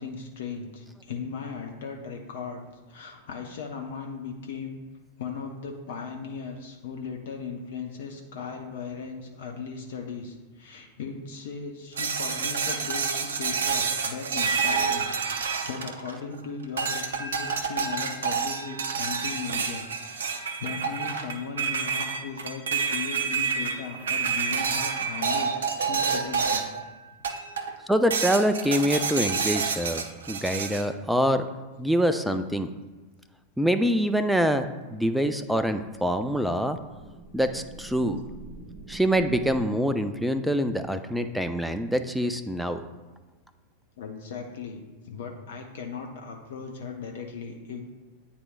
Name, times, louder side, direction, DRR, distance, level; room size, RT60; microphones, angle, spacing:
voice 1, 0.0-4.8 5.2-26.7 27.5-27.8 44.0-44.8 45.0-47.9, left 5 dB, 55° left, 2 dB, 0.7 m, -37 dB
sound 1, 12.0-16.3 16.8-26.8 27.2-27.7 28.1-30.8, right 5 dB, 65° right, 0.5 m, -28 dB
voice 2, 27.9-31.4 31.8-32.7 33.6-34.6 34.9-36.8 37.3-38.2 38.9-42.8, equal, ahead, 8 dB, 0.3 m, -25 dB
sound 2, 35.5-39.6, right 2 dB, 20° right, 1.3 m, -46 dB
9.4 x 4.2 x 2.4 m, 1.2 s
figure-of-eight pair, 90°, 0 cm